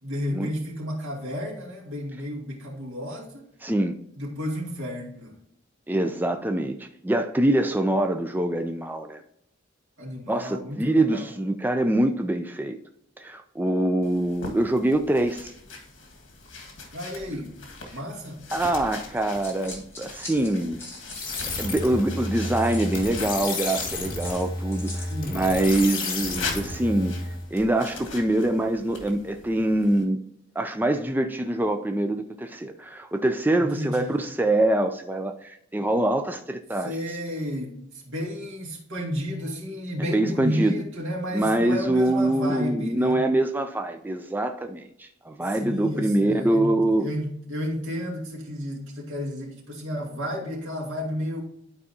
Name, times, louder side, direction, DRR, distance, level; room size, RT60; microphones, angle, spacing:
voice 1, 0.0-3.5 4.1-5.3 10.0-11.3 16.9-17.5 17.8-18.4 25.1-25.4 33.6-34.1 36.8-43.2 45.4-46.7 47.0-51.4, equal, 75° right, 2.4 m, -32 dB
voice 2, 3.6-3.9 5.9-9.2 10.3-12.8 13.2-15.5 17.3-17.4 18.5-20.8 21.6-30.2 30.6-36.9 40.0-40.8 41.3-47.1, right 1 dB, 10° right, 0.4 m, -24 dB
sound 1, 14.0-24.6 25.6-30.1, left 3 dB, 70° left, 1.7 m, -41 dB
sound 2, 19.2-21.9 22.5-25.2, left 2 dB, 15° left, 1.9 m, -42 dB
sound 3, 21.1-27.5, left 2 dB, 45° left, 2.0 m, -31 dB
11.0 x 4.7 x 2.7 m
head